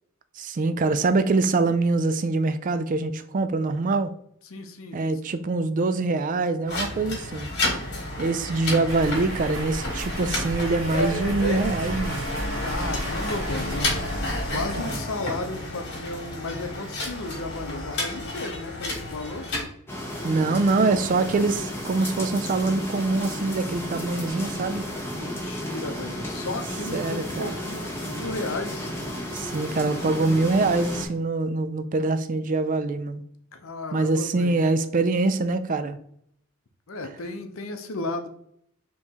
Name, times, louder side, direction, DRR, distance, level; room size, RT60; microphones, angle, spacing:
voice 1, 0.4-4.1 4.9-7.5 8.2-12.3 14.5-15.0 20.2-24.8 26.9-27.5 29.3-33.2 33.9-36.0, right 3 dB, 35° right, 0.3 m, -24 dB
voice 2, 4.4-5.0 8.5-8.6 12.6-19.5 25.2-28.9 33.5-34.6 36.9-38.3, left 2 dB, 65° left, 0.6 m, -34 dB
sound 1, 6.7-19.6, left 1 dB, 50° left, 1.6 m, -31 dB
sound 2, 8.9-14.9, right 1 dB, 65° right, 1.2 m, -34 dB
sound 3, 19.9-31.1, equal, 10° left, 0.9 m, -33 dB
4.3 x 3.0 x 3.5 m
head